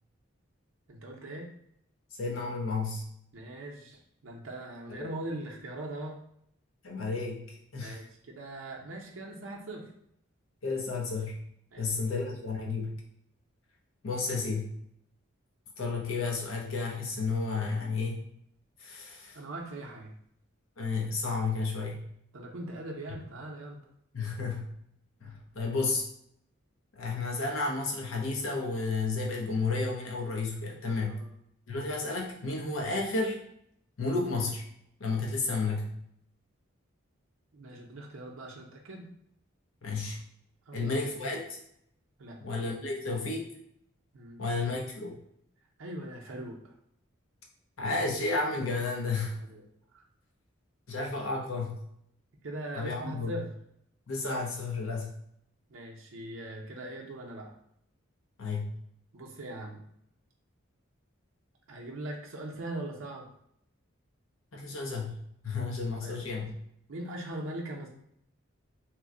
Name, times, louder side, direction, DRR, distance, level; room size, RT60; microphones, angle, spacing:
voice 1, 0.9-1.5 3.3-6.2 7.8-9.9 11.7-12.2 19.3-20.2 22.3-23.8 31.1-31.3 37.5-39.1 40.7-41.0 42.2-42.4 44.1-44.6 45.0-45.1 45.8-46.7 49.4-49.6 49.9-50.0 52.4-53.5 55.7-57.5 59.1-59.8 61.7-63.3 66.0-66.2 66.9-67.9, right 1 dB, 75° right, -1 dB, 0.5 m, -41 dB
voice 2, 2.2-3.1 4.9-5.1 6.8-8.0 10.6-11.4 11.8-12.9 14.0-14.7 15.8-18.2 18.8-19.4 20.8-22.0 24.1-24.7 25.2-26.0 26.9-31.2 31.7-33.4 34.0-34.6 35.0-35.9 39.8-40.2 40.7-41.6 42.4-43.5 44.4-45.2 47.8-49.5 50.9-51.8 52.7-53.3 54.1-55.1 58.4-58.7 64.5-66.6, left 3 dB, 80° left, 0 dB, 0.7 m, -32 dB
3.0 x 2.1 x 3.6 m, 0.72 s
head